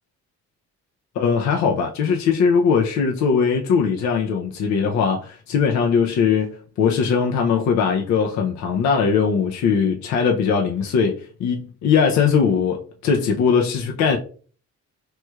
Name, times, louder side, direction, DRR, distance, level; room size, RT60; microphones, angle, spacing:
voice 1, 1.2-14.2, left 6 dB, 65° left, 0.5 m, -20 dB
3.2 x 3.0 x 2.3 m
cardioid pair, 90°, 30 cm